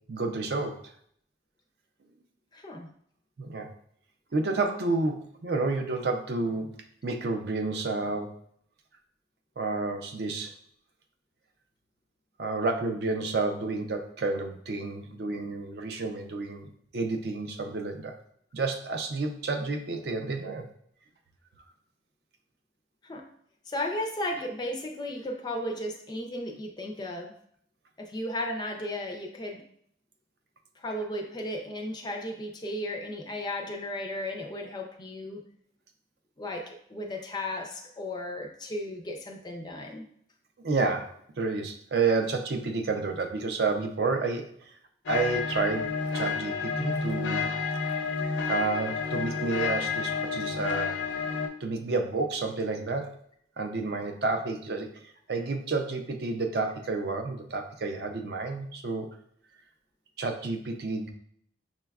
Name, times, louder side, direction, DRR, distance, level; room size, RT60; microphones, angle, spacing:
voice 1, 0.1-0.8 3.4-3.7 4.3-6.7 7.0-8.3 9.6-10.5 12.4-16.7 16.9-18.2 18.5-20.6 40.6-41.1 41.4-44.5 45.1-47.5 47.9-48.1 48.5-51.0 51.6-53.1 53.6-54.9 55.3-59.1 60.2-61.1, right 3 dB, 55° right, 5 dB, 0.4 m, -30 dB
voice 2, 2.5-2.9 23.0-23.3 23.7-27.3 28.0-29.6 30.8-35.4 36.4-40.1, left 1 dB, 20° left, 3 dB, 0.4 m, -35 dB
sound 1, 45.1-51.5, left 5 dB, 80° left, 0.5 m, -30 dB
6.0 x 2.2 x 2.3 m, 0.66 s
head